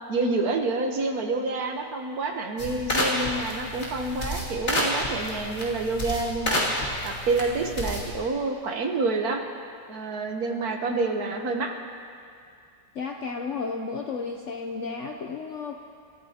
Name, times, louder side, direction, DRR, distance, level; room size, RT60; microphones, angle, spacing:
voice 1, 0.1-6.6 7.0-9.4 9.9-11.7, right 3 dB, 60° right, 3 dB, 1.4 m, -28 dB
sound 1, 2.6-8.2, left 1 dB, 40° left, 2.8 m, -29 dB
voice 2, 12.9-15.7, left 4 dB, 60° left, 3 dB, 0.8 m, -33 dB
26.5 x 13.5 x 2.9 m, 2.4 s
omnidirectional pair, 1.9 m